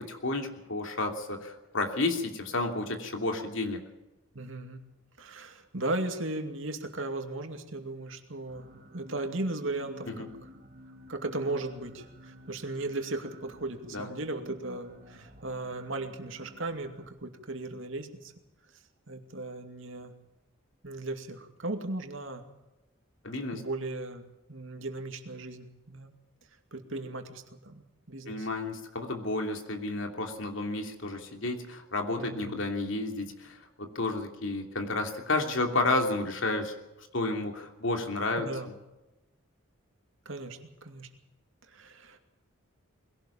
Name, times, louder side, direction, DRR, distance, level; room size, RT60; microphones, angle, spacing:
voice 1, 0.0-3.8 10.1-10.3 13.9-14.1 23.2-23.6 28.3-38.7, left 2 dB, 65° left, 3 dB, 2.9 m, -31 dB
voice 2, 4.3-4.8 5.2-8.7 8.9-10.3 11.1-18.3 19.1-20.2 20.8-22.4 23.5-26.1 26.7-28.5 32.2-32.6 38.4-38.7 40.3-41.1 41.7-42.2, right 2 dB, 65° right, 5 dB, 2.4 m, -37 dB
sound 1, 8.5-17.1, equal, 45° right, 3.2 m, -52 dB
21.5 x 17.5 x 7.3 m, 1.0 s
head